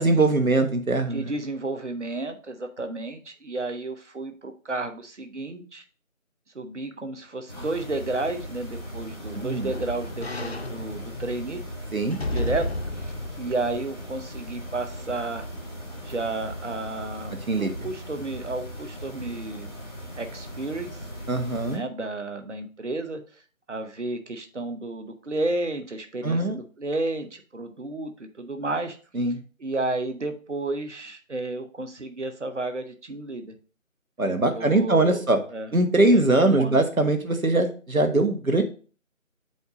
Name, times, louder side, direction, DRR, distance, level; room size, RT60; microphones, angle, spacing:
voice 1, 0.0-1.3 9.3-9.7 11.9-12.2 17.5-17.7 21.3-21.8 26.2-26.6 29.1-29.4 34.2-35.4 35.7-38.6, right 2 dB, 90° right, 6 dB, 1.4 m, -22 dB
voice 2, 1.1-5.8 6.5-11.6 12.2-15.5 16.0-19.7 20.1-21.0 21.6-23.2 23.7-29.0 29.6-33.6 34.2-35.2 35.5-35.7 36.1-36.8, right 2 dB, 60° right, 7 dB, 1.0 m, -32 dB
sound 1, 7.5-21.8, equal, 20° right, 1.2 m, -38 dB
sound 2, 8.7-14.8 15.3-15.4, left 2 dB, 50° left, 0.5 m, -35 dB
7.9 x 2.8 x 5.0 m, 0.38 s
figure-of-eight pair, 165°, 41 cm